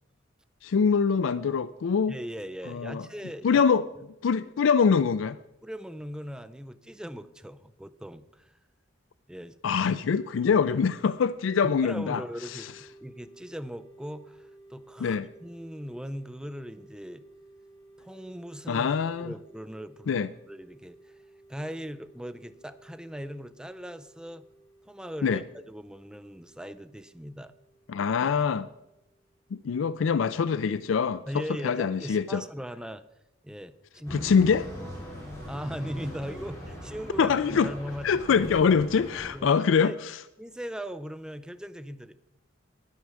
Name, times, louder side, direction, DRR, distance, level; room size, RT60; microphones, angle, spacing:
voice 1, 0.6-2.2 2.7-3.1 3.4-3.9 4.2-5.4 9.6-12.2 15.0-15.3 18.7-19.3 20.1-20.3 25.2-25.4 27.9-28.7 29.5-31.2 31.6-32.4 34.1-34.7 37.2-37.7 38.0-39.9, left 6 dB, 80° left, 15 dB, 0.4 m, -24 dB
voice 2, 2.1-3.6 5.6-8.5 9.3-9.7 11.6-17.2 18.0-18.9 19.2-21.2 21.5-24.4 24.9-27.5 31.3-33.0 33.4-34.5 35.5-38.2 39.3-40.0 40.4-42.4, equal, 5° right, 11 dB, 0.5 m, -39 dB
sound 1, 12.4-29.8, right 2 dB, 35° left, 3.1 m, -56 dB
sound 2, 34.1-39.3, equal, 15° left, 3.6 m, -40 dB
10.0 x 9.6 x 6.2 m, 0.89 s
head